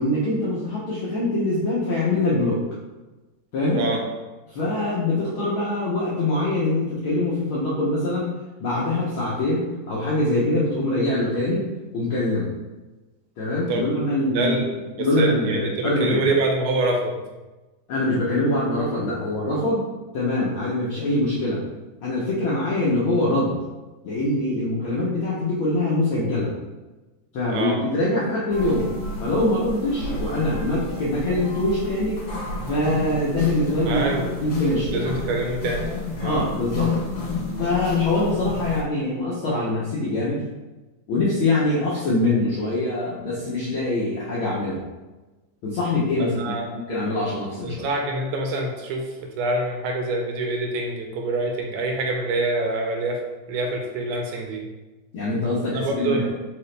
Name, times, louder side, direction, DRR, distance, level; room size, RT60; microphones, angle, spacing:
voice 1, 0.0-2.6 3.5-3.9 4.5-8.3 8.6-11.6 11.9-12.5 13.4-14.6 15.0-16.2 17.9-19.8 20.1-21.6 22.0-23.6 24.0-26.5 27.3-28.9 29.2-32.2 32.7-34.1 34.4-35.2 36.2-37.0 37.6-40.4 41.1-44.8 45.6-47.8 55.1-56.3, left 2 dB, 85° left, -7 dB, 1.1 m, -23 dB
voice 2, 15.0-17.2 27.5-27.8 33.9-34.3 34.9-35.9 36.2-36.4 46.3-46.7 47.6-49.1 49.4-53.2 53.5-54.6 55.7-56.3, right 2 dB, 90° right, 1 dB, 2.2 m, -25 dB
sound 1, 28.5-38.8, left 3 dB, 55° left, 1.8 m, -30 dB
4.9 x 2.9 x 3.2 m, 1.1 s
omnidirectional pair, 3.4 m